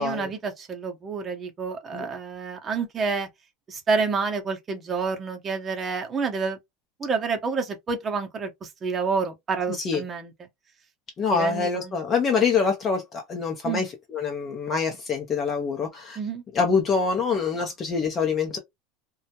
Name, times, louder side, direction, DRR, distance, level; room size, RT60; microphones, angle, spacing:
voice 1, 0.0-3.3 3.7-6.6 7.0-10.3 11.3-12.0 13.6-13.9 16.2-16.4, right 5 dB, 25° right, 0.8 m, -29 dB
voice 2, 11.2-16.2 16.5-18.6, left 5 dB, 30° left, 0.6 m, -25 dB
2.2 x 2.0 x 2.8 m
supercardioid pair, 125°, 0 cm